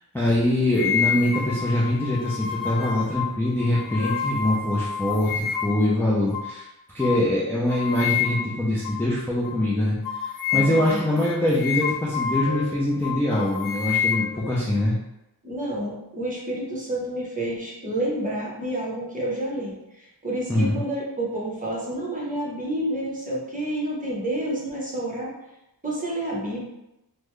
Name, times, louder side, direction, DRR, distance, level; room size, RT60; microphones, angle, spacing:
voice 1, 0.1-6.7 6.9-10.0 10.5-15.0 20.5-20.8, left 1 dB, 5° left, -7 dB, 0.5 m, -23 dB
sound 1, 0.7-5.9 6.3-6.5 7.0-7.2 7.7-8.6 8.8-9.0 9.4-9.6 10.0-12.7 13.0-14.9, left 8 dB, 60° left, 0.5 m, -28 dB
voice 2, 10.5-11.0 15.4-25.3 25.8-26.6, right 1 dB, 20° right, -4 dB, 0.9 m, -29 dB
3.7 x 2.1 x 3.1 m, 0.90 s
wide cardioid pair, 115°, 38 cm